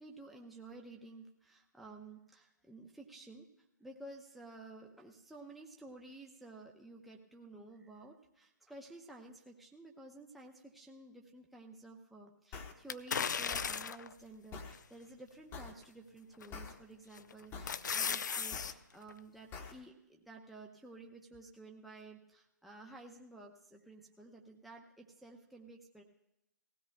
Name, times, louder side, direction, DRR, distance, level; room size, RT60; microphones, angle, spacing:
voice 1, 0.0-3.5 3.8-26.0, right 2 dB, ahead, 0 dB, 0.7 m, -53 dB
sound 1, 12.5-12.7 13.5-13.7 14.5-14.7 15.5-15.7 16.5-16.7 17.5-17.7 18.5-18.7 19.5-19.7, left 5 dB, 20° left, 1.1 m, -45 dB
sound 2, 12.9-14.1 14.7-14.8 16.4-16.7 17.2-18.7 19.1-19.2, left 6 dB, 65° left, 0.5 m, -36 dB
19.0 x 16.0 x 2.2 m, 0.85 s
figure-of-eight pair, 135°, 10 cm